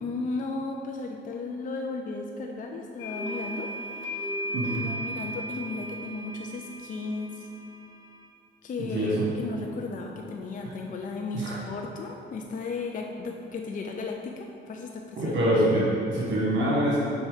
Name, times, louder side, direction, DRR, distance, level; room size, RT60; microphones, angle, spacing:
voice 1, 0.0-3.7 4.0-4.3 4.8-7.5 8.6-15.3, left 3 dB, 40° left, 2 dB, 0.5 m, -35 dB
sound 1, 3.0-8.3, equal, 65° left, 1.0 m, -36 dB
voice 2, 4.5-4.9 8.8-9.2 11.3-11.5 15.2-17.0, right 1 dB, 70° right, -7 dB, 1.4 m, -25 dB
5.5 x 4.2 x 4.9 m, 2.6 s
cardioid pair, 90°, 20 cm